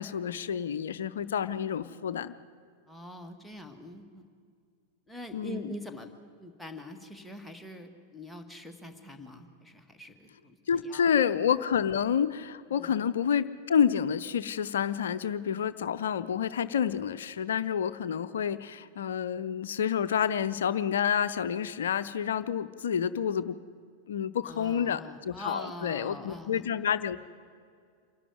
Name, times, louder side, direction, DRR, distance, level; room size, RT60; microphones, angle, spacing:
voice 1, 0.0-2.3 5.3-5.7 10.7-23.6 24.1-27.2, left 8 dB, 65° left, 13 dB, 0.6 m, -29 dB
voice 2, 2.9-4.2 5.1-6.1 6.4-11.1 12.7-13.0 24.4-26.8, left 1 dB, ahead, 3 dB, 1.6 m, -44 dB
26.5 x 12.0 x 9.6 m, 2.2 s
figure-of-eight pair, 90°, 0 cm